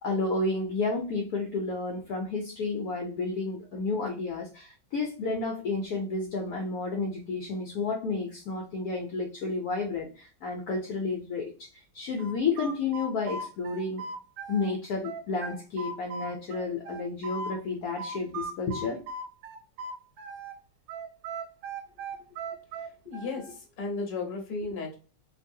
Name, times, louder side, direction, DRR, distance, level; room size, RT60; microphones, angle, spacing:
voice 1, 0.0-14.0 14.5-19.0, left 3 dB, 70° left, 2 dB, 0.9 m, -31 dB
sound 1, 12.2-14.7 15.0-17.6 18.0-20.6 20.9-23.5, right 3 dB, 80° right, 1.4 m, -38 dB
voice 2, 23.0-24.9, left 3 dB, 40° left, 0 dB, 0.8 m, -34 dB
2.9 x 2.6 x 2.6 m, 0.35 s
omnidirectional pair, 2.0 m